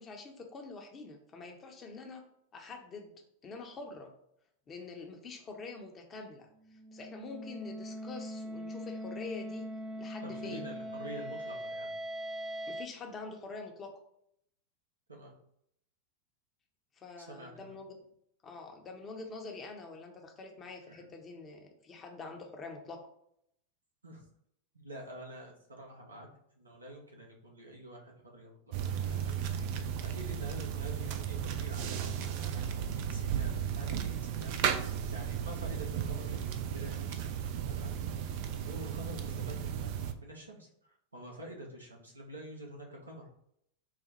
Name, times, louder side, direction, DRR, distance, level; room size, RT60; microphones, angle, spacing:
voice 1, 0.0-2.2 2.5-3.1 3.4-4.1 4.7-9.7 10.0-10.7 12.7-13.9 17.0-17.9 18.4-23.0, left 3 dB, 25° left, 2 dB, 0.7 m, -45 dB
sound 1, 6.6-12.9, equal, 15° right, 0.6 m, -41 dB
voice 2, 10.2-11.9 15.1-15.3 17.2-17.5 20.9-21.1 24.0-24.2 24.7-26.3 26.5-29.4 30.1-32.0 32.4-32.7 33.0-37.2 37.7-38.0 38.6-43.3, right 1 dB, 80° right, -1 dB, 0.9 m, -47 dB
sound 2, 28.7-40.1, right 8 dB, 45° right, 0.3 m, -35 dB
4.0 x 2.1 x 4.3 m, 0.73 s
figure-of-eight pair, 90°, 0 cm